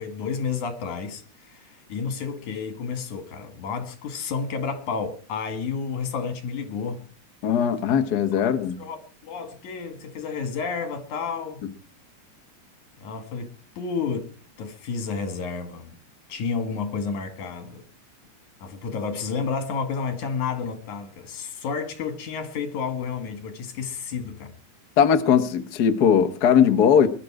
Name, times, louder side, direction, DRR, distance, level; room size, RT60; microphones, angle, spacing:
voice 1, 0.0-7.0 8.3-8.5 8.8-11.7 13.0-14.3 14.6-15.9 16.3-17.8 18.6-24.5, left 5 dB, 80° left, 3.5 m, -31 dB
voice 2, 7.4-8.8 25.0-27.1, left 8 dB, 60° left, 1.0 m, -19 dB
21.5 x 11.5 x 4.8 m
omnidirectional pair, 3.4 m